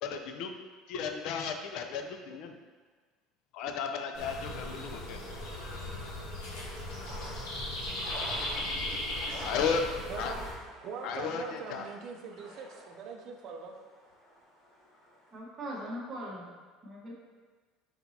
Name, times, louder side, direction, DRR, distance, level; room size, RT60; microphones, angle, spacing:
voice 1, 0.0-0.6 0.9-2.6 3.5-5.2 9.4-9.8 10.2-10.3 11.0-11.8, left 6 dB, 60° left, 5 dB, 0.4 m, -34 dB
sound 1, 4.1-10.5, left 1 dB, 85° left, 1.2 m, -37 dB
sound 2, 6.6-15.4, equal, 45° left, 1.3 m, -48 dB
Marimba xylophone, 8.2-10.9, left 1 dB, 10° left, 0.7 m, -54 dB
voice 2, 10.8-13.7, right 5 dB, 50° right, 3 dB, 0.5 m, -42 dB
voice 3, 15.3-16.5 16.8-17.1, equal, 25° right, -5 dB, 1.1 m, -40 dB
4.4 x 4.1 x 2.8 m, 1.4 s
cardioid pair, 145°, 0 cm